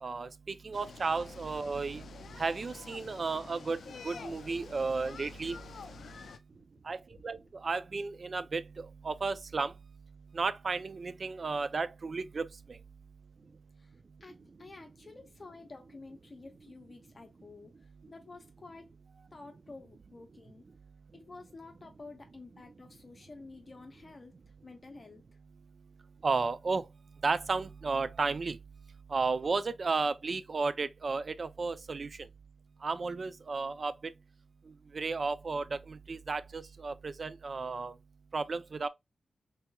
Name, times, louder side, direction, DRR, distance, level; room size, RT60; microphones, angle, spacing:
voice 1, 0.0-2.0 2.4-5.6 6.8-7.0 7.2-9.7 10.3-12.8 26.2-26.9 27.2-28.6 29.1-32.1 32.8-33.9 34.9-37.9 38.3-38.9, right 4 dB, 55° right, 0.3 m, -33 dB
sound 1, 0.7-6.4, left 5 dB, 80° left, 0.4 m, -48 dB
voice 2, 13.8-18.9 19.3-20.7 21.1-24.3 24.6-25.2, left 3 dB, 45° left, 0.6 m, -51 dB
3.3 x 3.0 x 2.2 m
cardioid pair, 55°, 0 cm